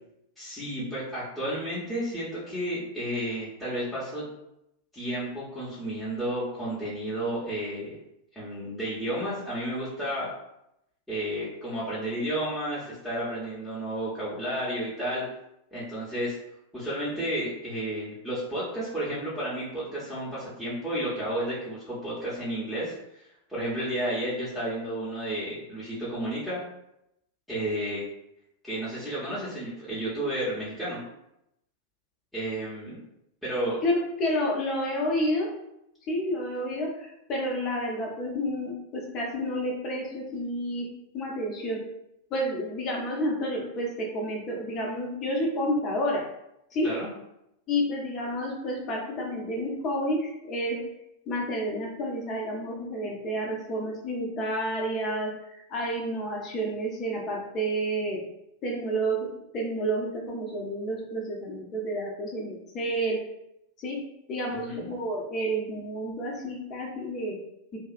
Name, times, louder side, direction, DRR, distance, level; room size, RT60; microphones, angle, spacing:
voice 1, 0.4-4.3 4.9-7.9 8.3-10.3 11.1-15.3 15.7-16.4 16.7-22.9 23.5-26.6 27.5-28.0 28.6-31.0 32.3-33.0 33.4-33.8 46.8-47.1 64.6-64.8, right 1 dB, ahead, -12 dB, 0.9 m, -32 dB
voice 2, 33.8-35.5 36.1-40.9 41.1-41.8 42.3-46.2 46.7-46.9 47.7-50.8 51.3-58.2 58.6-59.3 59.5-63.2 63.8-64.0 64.3-67.4, equal, 35° left, -1 dB, 0.7 m, -30 dB
2.7 x 2.3 x 2.4 m, 0.82 s
figure-of-eight pair, 90°, 0 cm